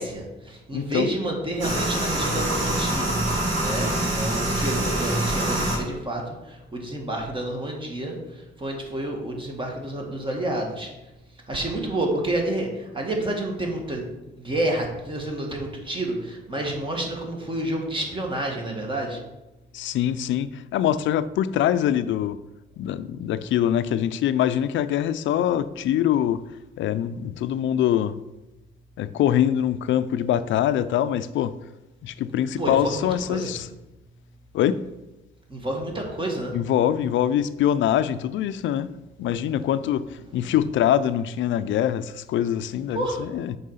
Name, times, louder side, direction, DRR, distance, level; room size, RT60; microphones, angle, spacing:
voice 1, 0.0-3.1 3.6-10.9 11.5-14.0 14.4-19.2 32.6-33.5 35.5-36.6 42.9-43.2, right 1 dB, 25° right, 1.9 m, -29 dB
voice 2, 0.7-1.1 19.7-22.4 22.8-26.4 26.8-28.2 29.0-31.5 32.0-33.7 34.5-34.8 36.5-38.9 39.2-43.6, left 10 dB, 75° left, 0.5 m, -24 dB
sound 1, 1.6-5.8, right 1 dB, 80° right, 2.8 m, -25 dB
6.3 x 4.7 x 5.6 m
cardioid pair, 90°, 20 cm